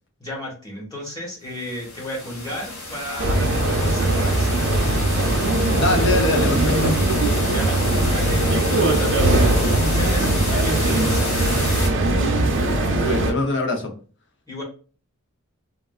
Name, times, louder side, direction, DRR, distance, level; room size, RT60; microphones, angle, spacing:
voice 1, 0.2-4.6 7.4-11.6 14.5-14.6, left 1 dB, 20° left, -4 dB, 1.3 m, -34 dB
sound 1, 1.5-11.9, left 2 dB, 85° left, 1.0 m, -30 dB
sound 2, 3.2-13.3, right 2 dB, 60° right, 0.5 m, -20 dB
voice 2, 5.7-7.0 13.0-13.9, left 2 dB, 55° left, 3 dB, 0.7 m, -23 dB
3.6 x 2.4 x 2.3 m, 0.39 s
head